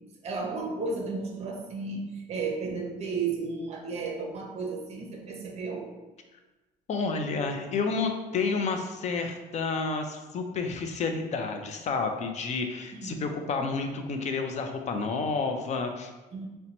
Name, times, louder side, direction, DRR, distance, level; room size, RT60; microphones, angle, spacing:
voice 1, 0.2-5.9 12.9-13.2 16.3-16.5, right 4 dB, 40° right, 1 dB, 0.7 m, -33 dB
voice 2, 6.9-16.1, left 4 dB, 45° left, 5 dB, 0.5 m, -30 dB
2.8 x 2.2 x 3.9 m, 1.1 s
cardioid pair, 110°, 17 cm